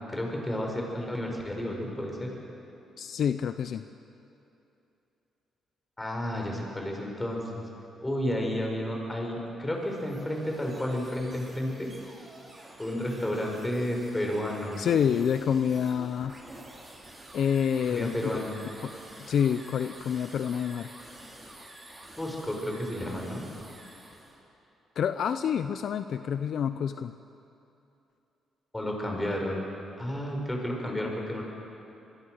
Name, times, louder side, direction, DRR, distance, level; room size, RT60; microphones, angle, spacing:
voice 1, 0.0-2.3 6.0-7.7 8.0-11.9 12.8-14.8 17.9-18.7 22.2-23.4 28.7-29.6 30.0-31.4, left 1 dB, 15° left, 0 dB, 6.0 m, -31 dB
voice 2, 3.0-3.8 14.8-16.4 17.3-18.4 18.8-18.9 19.2-20.9 25.0-27.1, left 8 dB, 65° left, 10 dB, 0.7 m, -28 dB
sound 1, 9.7-24.4, right 1 dB, 20° right, 6.0 m, -49 dB
25.5 x 22.0 x 6.6 m, 2.8 s
cardioid pair, 90°, 0 cm